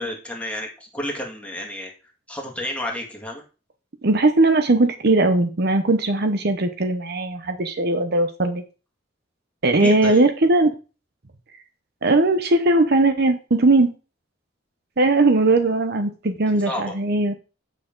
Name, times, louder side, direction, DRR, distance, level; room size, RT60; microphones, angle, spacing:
voice 1, 0.0-1.9 2.3-3.4 9.8-10.2 16.7-16.9, left 1 dB, 5° left, -1 dB, 2.1 m, -30 dB
voice 2, 4.0-8.6 9.6-10.7 12.0-13.9 15.0-17.3, right 2 dB, 55° right, 8 dB, 0.9 m, -19 dB
8.4 x 6.4 x 3.8 m, 0.33 s
head